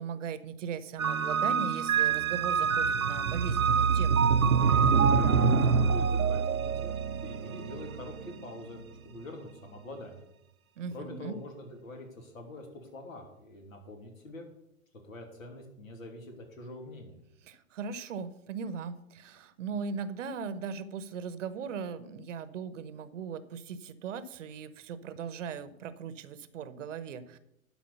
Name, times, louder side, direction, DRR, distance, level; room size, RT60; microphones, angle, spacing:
voice 1, 0.0-4.3 10.8-11.4 17.4-27.4, right 6 dB, 65° right, 14 dB, 1.0 m, -39 dB
sound 1, 1.0-8.3, right 6 dB, 85° right, 0.8 m, -25 dB
voice 2, 5.1-10.2 10.9-14.5 15.0-17.2, left 1 dB, 75° left, 3 dB, 2.9 m, -45 dB
11.5 x 4.9 x 6.8 m, 0.82 s
hypercardioid pair, 115°, 41 cm